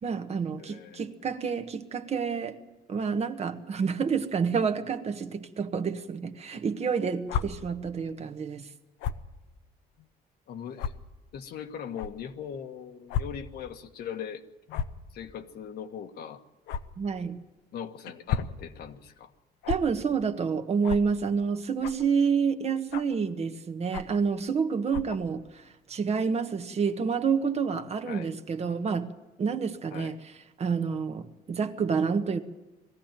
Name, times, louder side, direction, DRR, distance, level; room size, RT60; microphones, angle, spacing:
voice 1, 0.0-2.6 2.9-8.7 17.0-17.4 19.7-29.1 29.4-30.2 30.6-32.4, right 6 dB, 40° right, 1.4 m, -28 dB
voice 2, 0.6-1.1 10.5-10.9 11.3-14.4 15.1-16.4 17.7-19.3 28.1-28.3 29.9-30.1, left 8 dB, 65° left, 1.5 m, -40 dB
sound 1, 7.3-7.4 9.0-9.2 10.0-10.1 10.8-10.9 12.0-12.1 13.1-13.2 13.6-13.7 14.7-15.0 16.7-16.8 18.1-18.5 19.6-19.8 20.8-21.0 21.8-22.1 22.9-23.2 23.9-24.2 24.9-25.2, left 8 dB, 85° left, 1.0 m, -31 dB
20.5 x 15.0 x 9.2 m
cardioid pair, 110°, 17 cm